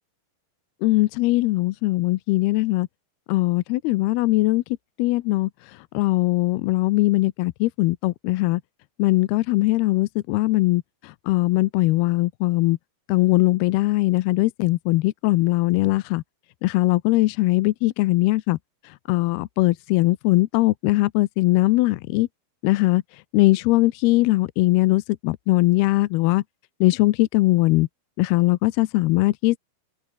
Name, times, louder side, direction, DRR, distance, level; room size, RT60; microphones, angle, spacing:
voice 1, 0.8-2.9 3.3-4.6 5.0-5.5 5.9-8.6 9.0-12.8 13.1-16.2 16.6-18.6 19.1-22.3 22.6-23.0 23.3-26.4 26.8-27.9 28.2-29.6, left 19 dB, 80° left, 2.6 m, -20 dB
omnidirectional pair, 4.6 m